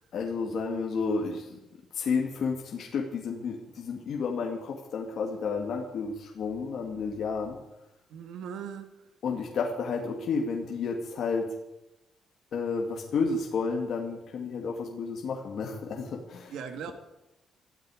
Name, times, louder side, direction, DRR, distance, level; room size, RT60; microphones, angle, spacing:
voice 1, 0.1-1.6 1.9-7.6 9.2-11.4 12.5-16.5, left 5 dB, 55° left, 0 dB, 2.3 m, -31 dB
voice 2, 8.1-9.0 16.5-16.9, right 7 dB, 80° right, 7 dB, 1.7 m, -39 dB
20.5 x 12.5 x 5.1 m, 0.90 s
cardioid pair, 155°, 0 cm